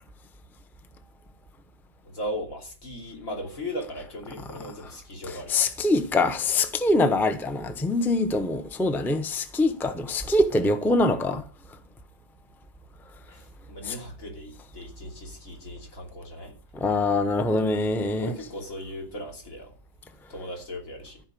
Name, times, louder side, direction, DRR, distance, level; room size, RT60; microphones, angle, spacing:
voice 1, 2.0-5.5 13.3-16.5 18.2-19.7 20.3-21.2, equal, 55° left, 3.5 m, -37 dB
voice 2, 5.3-11.4 13.9-14.0 16.7-18.3, left 2 dB, ahead, 0.6 m, -24 dB
14.5 x 5.2 x 8.5 m
omnidirectional pair, 1.7 m